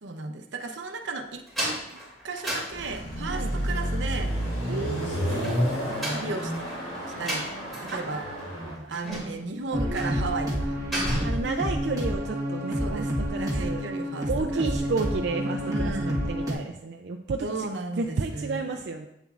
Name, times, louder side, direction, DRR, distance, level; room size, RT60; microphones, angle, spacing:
voice 1, 0.0-1.4 2.2-4.3 6.1-6.5 7.0-7.5 7.8-8.2 8.9-10.8 12.8-14.9 15.6-16.3 17.4-18.7, right 3 dB, 80° right, 5 dB, 0.7 m, -35 dB
sound 1, 1.5-3.4 5.2-8.1 8.4-8.5 8.9-9.5 9.9-10.2 10.5-11.5, right 1 dB, ahead, 2.7 m, -33 dB
Car passing by / Accelerating revving vroom, 2.7-8.7, equal, 45° left, 2.7 m, -30 dB
voice 2, 4.7-5.6 7.9-9.1 11.2-13.8 14.3-17.7 18.0-19.1, right 3 dB, 60° right, 2 dB, 0.4 m, -32 dB
sound 2, 9.7-16.5, equal, 20° right, 1.3 m, -29 dB
8.2 x 7.0 x 2.5 m, 0.84 s
head